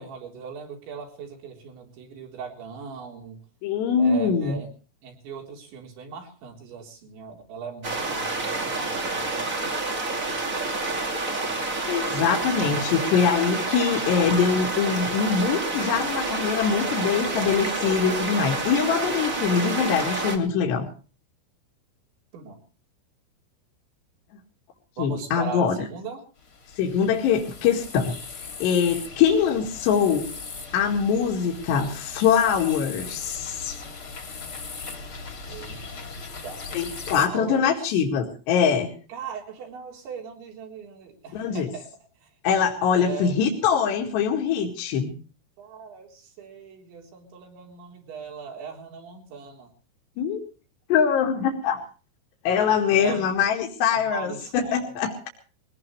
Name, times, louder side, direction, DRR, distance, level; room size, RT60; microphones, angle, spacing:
voice 1, 0.0-3.4 4.0-4.7 5.0-9.5 12.4-13.0 22.3-22.6 25.0-26.2 35.5-35.9 36.4-36.7 37.1-38.0 39.1-41.9 42.2-42.3 43.0-43.3 45.6-49.7 53.0-53.3 53.9-55.3, right 5 dB, 65° right, 1 dB, 6.0 m, -39 dB
voice 2, 3.6-4.6 11.9-20.9 25.0-25.8 26.8-30.3 30.7-33.8 36.7-39.0 41.3-41.7 42.4-45.1 50.2-50.4 50.9-51.8 52.5-55.1, left 7 dB, 65° left, 0 dB, 4.0 m, -23 dB
sound 1, 7.8-20.4, right 3 dB, 30° right, 1.5 m, -28 dB
sound 2, 26.4-37.3, left 4 dB, 35° left, 2.7 m, -39 dB
22.5 x 18.5 x 3.2 m, 0.37 s
omnidirectional pair, 5.7 m